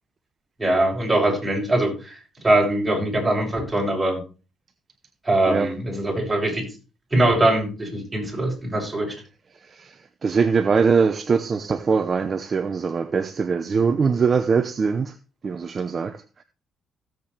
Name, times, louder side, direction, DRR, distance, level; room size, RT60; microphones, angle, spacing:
voice 1, 0.6-2.2 2.4-4.2 5.3-6.6 7.1-9.1, right 1 dB, 15° right, 7.4 m, -22 dB
voice 2, 9.5-15.2 15.4-16.4, right 5 dB, 40° right, 0.9 m, -22 dB
16.5 x 7.7 x 3.4 m
cardioid pair, 90°, 0 cm